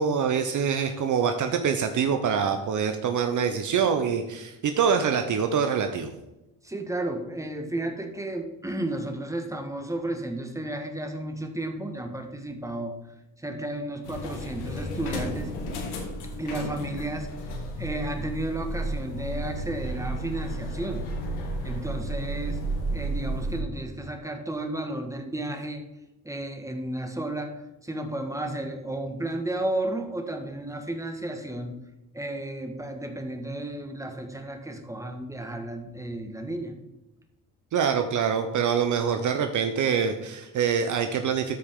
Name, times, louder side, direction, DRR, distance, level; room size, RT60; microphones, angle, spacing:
voice 1, 0.0-6.1 37.7-41.6, right 7 dB, 55° right, 7 dB, 0.8 m, -25 dB
voice 2, 6.6-12.9 13.4-15.5 16.4-17.3 17.8-21.0 21.6-22.6 22.9-25.8 26.2-27.5 27.8-31.7 32.1-36.7, right 1 dB, 10° right, 4 dB, 1.4 m, -33 dB
sound 1, 14.0-23.6, right 1 dB, 85° left, 1.7 m, -32 dB
13.0 x 5.1 x 3.7 m, 0.96 s
cardioid pair, 85°, 37 cm